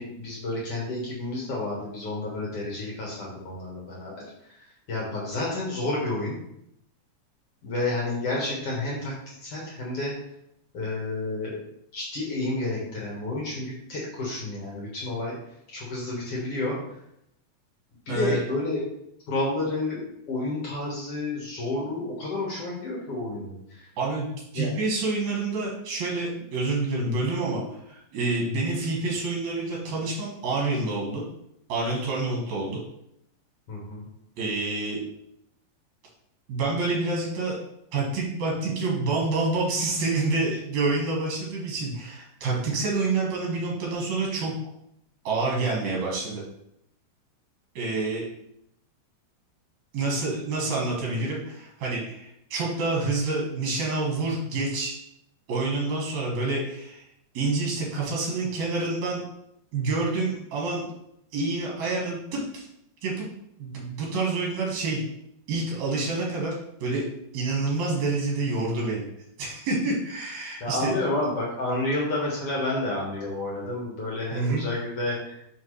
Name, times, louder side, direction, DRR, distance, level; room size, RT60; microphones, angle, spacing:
voice 1, 0.0-4.2 4.9-6.4 7.6-10.1 10.7-11.5 11.9-15.4 15.7-16.8 18.1-18.8 19.3-23.6 24.5-24.7 33.7-34.0 70.6-75.3, left 2 dB, 60° left, -4 dB, 1.5 m, -30 dB
voice 2, 18.1-18.4 24.0-24.3 24.5-31.2 31.7-32.8 34.4-35.0 36.5-37.6 37.9-44.5 45.2-46.4 47.8-48.2 49.9-55.0 55.5-57.0 57.3-59.2 59.7-60.9 61.3-62.7 63.0-63.3 63.6-65.0 65.5-66.5 66.8-67.0 67.3-69.0 69.4-70.9 74.3-74.6, right 3 dB, 60° right, -3 dB, 2.1 m, -27 dB
5.8 x 5.5 x 3.2 m, 0.77 s
omnidirectional pair, 4.7 m